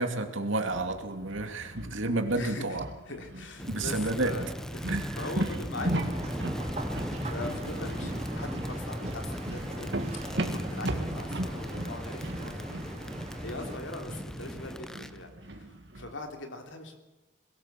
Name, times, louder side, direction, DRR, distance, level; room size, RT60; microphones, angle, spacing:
voice 1, 0.0-2.9 3.7-4.3 4.9-5.2, right 2 dB, 80° right, 6 dB, 2.4 m, -30 dB
sound 1, 0.7-16.1, right 1 dB, 60° right, 2.0 m, -38 dB
voice 2, 2.3-2.8 3.1-4.5 4.7-6.6 7.3-13.1 13.4-17.0, left 2 dB, 75° left, 4 dB, 3.2 m, -42 dB
Crackle, 3.6-15.2, equal, 5° left, 0.7 m, -37 dB
sound 2, 5.8-13.8, right 1 dB, 35° right, 2.9 m, -41 dB
21.5 x 17.0 x 7.5 m, 1.0 s
head